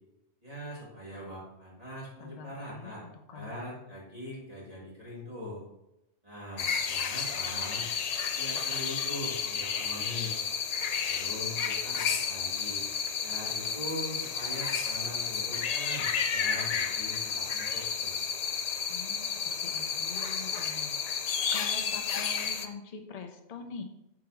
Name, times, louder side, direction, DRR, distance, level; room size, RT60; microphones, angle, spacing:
voice 1, 0.4-3.0 3.3-5.6 6.2-7.8 8.3-10.3 11.0-12.8 13.2-18.1, left 1 dB, 30° right, -7 dB, 2.5 m, -42 dB
voice 2, 2.2-3.8 18.9-20.9 21.5-23.8, left 4 dB, 40° left, 5 dB, 0.6 m, -44 dB
sound 1, 6.6-22.7, left 6 dB, 85° left, 0.3 m, -31 dB
7.5 x 5.0 x 3.0 m, 0.88 s
omnidirectional pair, 1.3 m